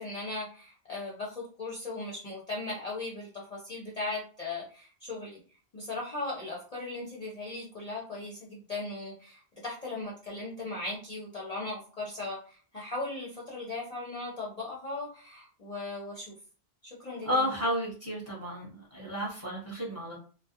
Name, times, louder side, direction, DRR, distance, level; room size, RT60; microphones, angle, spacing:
voice 1, 0.0-5.4 5.7-16.3 16.8-17.4, left 2 dB, 45° left, -4 dB, 0.6 m, -38 dB
voice 2, 17.2-20.2, equal, 15° right, -5 dB, 0.9 m, -32 dB
2.3 x 2.1 x 2.8 m, 0.40 s
omnidirectional pair, 1.1 m